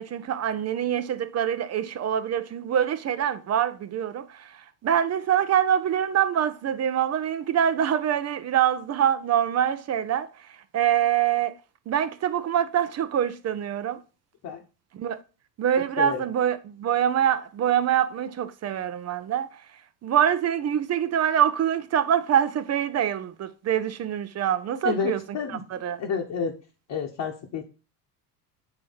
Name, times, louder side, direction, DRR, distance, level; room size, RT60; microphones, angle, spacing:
voice 1, 0.0-11.5 11.9-14.0 14.9-15.2 15.6-19.6 20.0-26.0, right 9 dB, 35° right, 0.6 m, -25 dB
voice 2, 24.8-25.6 26.0-26.5 26.9-27.6, left 6 dB, 45° left, 1.2 m, -29 dB
8.6 x 3.2 x 5.5 m
hypercardioid pair, 80°, 47 cm